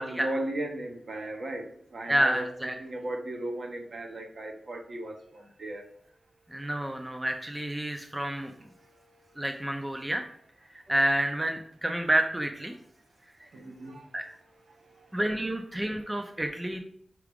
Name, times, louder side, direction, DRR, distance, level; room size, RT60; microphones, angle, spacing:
voice 1, 0.0-5.8 13.5-14.0 15.0-15.1, right 1 dB, 60° right, 3 dB, 1.2 m, -36 dB
voice 2, 2.1-2.7 6.5-8.5 9.4-10.3 10.9-12.7 14.1-14.2 15.1-16.8, right 1 dB, 10° right, 4 dB, 0.5 m, -29 dB
5.7 x 4.8 x 5.1 m, 0.64 s
wide cardioid pair, 180°, 0 cm